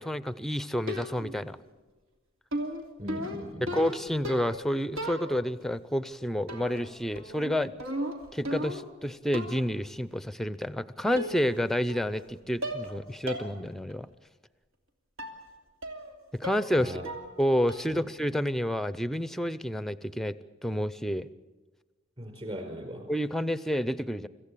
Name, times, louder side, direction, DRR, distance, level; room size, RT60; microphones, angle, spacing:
voice 1, 0.0-1.6 3.6-7.7 8.3-14.1 16.4-17.0 17.4-20.3 20.6-21.3 23.1-24.3, equal, ahead, 16 dB, 0.6 m, -29 dB
sound 1, 0.9-1.4 2.5-4.7 5.0-5.6 6.5-6.9 7.2-9.0 9.3-9.7 10.6-10.7 11.2-11.6 11.9-12.3 12.6-12.9 13.3-13.5 13.9-14.0 15.2-15.4 15.8-16.1 16.4-16.8 17.0-17.4 17.7-18.0, equal, 80° right, 3.1 m, -36 dB
voice 2, 3.0-3.8 16.7-17.0 17.9-18.0 22.2-23.1, equal, 30° right, 5 dB, 4.7 m, -39 dB
25.5 x 15.0 x 8.4 m, 1.3 s
head